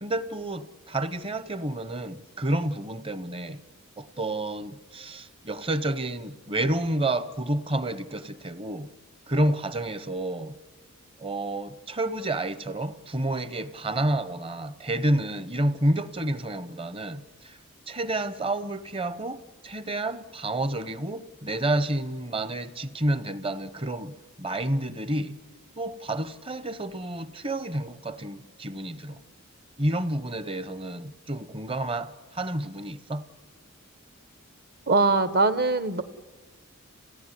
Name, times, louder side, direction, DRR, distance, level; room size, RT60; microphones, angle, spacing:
voice 1, 0.0-3.6 4.0-8.9 9.3-10.6 11.2-17.6 17.9-25.4 25.8-29.2 29.8-33.3, right 1 dB, 25° right, 0.9 m, -29 dB
voice 2, 34.9-36.0, right 3 dB, 45° right, 1.1 m, -22 dB
28.5 x 17.0 x 9.9 m
head